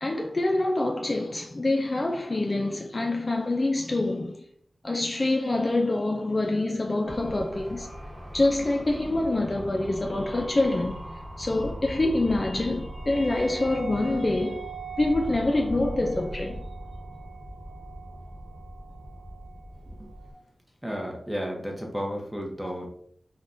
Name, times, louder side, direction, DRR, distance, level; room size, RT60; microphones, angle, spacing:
voice 1, 0.0-4.4 4.8-7.9 8.3-14.6 15.0-16.6, left 2 dB, 40° left, 0.3 m, -26 dB
sound 1, 7.1-20.3, right 1 dB, 45° right, 1.1 m, -39 dB
voice 2, 20.8-22.9, equal, 5° right, 0.8 m, -32 dB
3.4 x 2.2 x 2.5 m
wide cardioid pair, 65°, 0 cm